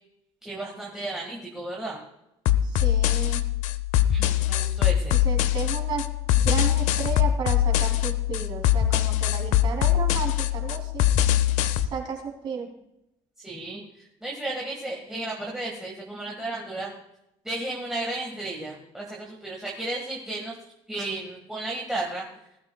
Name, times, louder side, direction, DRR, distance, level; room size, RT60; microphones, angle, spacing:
voice 1, 0.4-2.0 4.1-5.2 13.4-16.9 17.4-20.5 20.9-22.2, right 2 dB, 5° right, -3 dB, 1.7 m, -33 dB
sound 1, 2.5-11.9, left 12 dB, 85° left, 0.8 m, -23 dB
voice 2, 2.6-3.4 5.2-6.1 6.3-11.0 11.9-12.7, right 6 dB, 40° right, 1 dB, 3.0 m, -33 dB
19.5 x 12.5 x 2.3 m, 0.84 s
cardioid pair, 175°, 12 cm